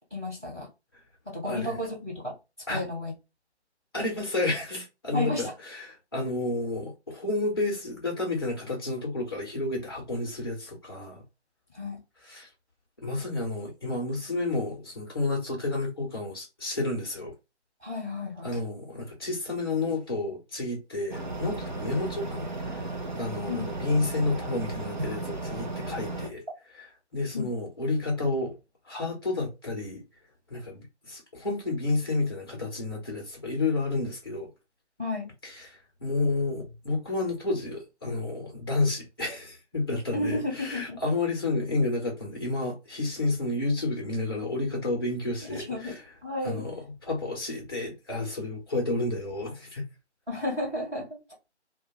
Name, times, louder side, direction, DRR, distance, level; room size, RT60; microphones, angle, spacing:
voice 1, 0.1-0.7 1.2-2.3 2.7-3.1 5.1-5.5 11.7-12.0 17.8-18.6 23.5-23.7 27.3-27.5 35.0-35.3 40.1-41.0 45.5-46.7 50.3-51.2, left 2 dB, 5° right, 0.9 m, -32 dB
voice 2, 1.4-1.8 2.7-2.8 3.9-11.2 12.3-12.5 13.0-17.3 18.4-22.9 23.1-26.4 27.1-28.5 28.9-30.0 30.5-34.5 35.4-46.0 46.4-49.8, left 2 dB, 20° left, 0.8 m, -30 dB
sound 1, 21.1-26.3, right 2 dB, 40° right, 0.6 m, -35 dB
2.5 x 2.2 x 3.5 m
figure-of-eight pair, 155°, 34 cm